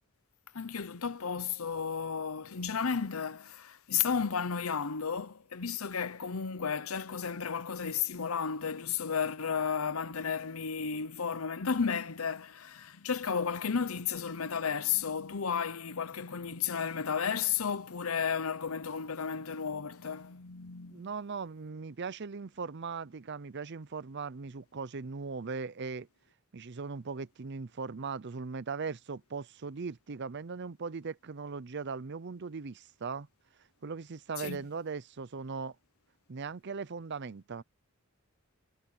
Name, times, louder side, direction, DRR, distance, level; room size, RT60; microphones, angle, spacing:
voice 1, 0.5-21.1 34.4-34.6, left 6 dB, 85° left, 0.9 m, -33 dB
voice 2, 20.9-26.1 26.5-33.3 33.8-35.7 36.3-37.6, right 5 dB, 55° right, 0.6 m, -39 dB
head